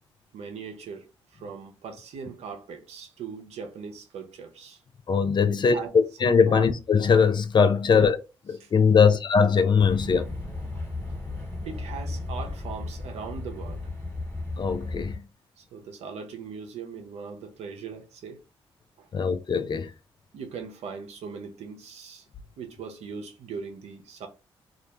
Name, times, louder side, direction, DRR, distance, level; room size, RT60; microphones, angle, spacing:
voice 1, 0.3-4.8 5.5-5.9 6.5-6.7 7.9-8.1 8.6-8.7 9.0-9.1 11.6-13.8 15.6-18.4 19.0-19.1 20.3-22.3 22.6-24.3, right 6 dB, 70° right, 0.6 m, -40 dB
voice 2, 5.1-8.2 8.5-10.3 14.6-15.1 19.1-19.9, left 6 dB, 40° left, 0.4 m, -21 dB
sound 1, 9.8-15.2, left 2 dB, 20° left, 1.3 m, -35 dB
2.4 x 2.1 x 2.8 m
hypercardioid pair, 45°, 11 cm